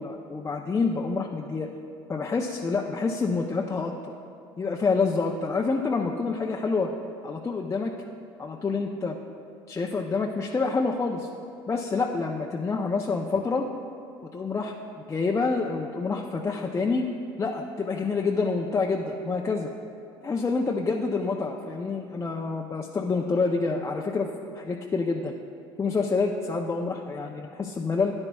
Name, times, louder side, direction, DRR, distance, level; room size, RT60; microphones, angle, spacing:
voice 1, 0.0-1.7 2.1-3.9 4.6-6.9 7.2-7.9 8.4-9.2 9.7-11.3 11.7-13.7 14.3-14.7 15.1-17.1 17.4-19.7 20.2-25.3 25.8-28.1, left 4 dB, 20° left, 0 dB, 0.5 m, -27 dB
13.0 x 9.6 x 2.3 m, 2.5 s
hypercardioid pair, 75°, 13 cm